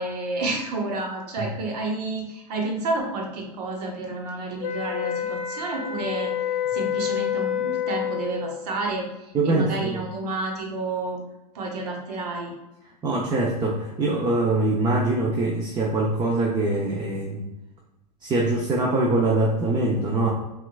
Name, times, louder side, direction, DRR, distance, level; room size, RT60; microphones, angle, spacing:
voice 1, 0.0-6.3 6.7-9.1 9.4-11.2 11.5-12.5, right 2 dB, 75° right, 0 dB, 1.1 m, -30 dB
sound 1, 4.6-8.5, left 9 dB, 75° left, 0.6 m, -28 dB
voice 2, 9.3-10.0 13.0-17.4 18.2-20.3, right 2 dB, 20° right, -2 dB, 0.7 m, -23 dB
5.7 x 2.5 x 2.4 m, 0.96 s
hypercardioid pair, 100°, 21 cm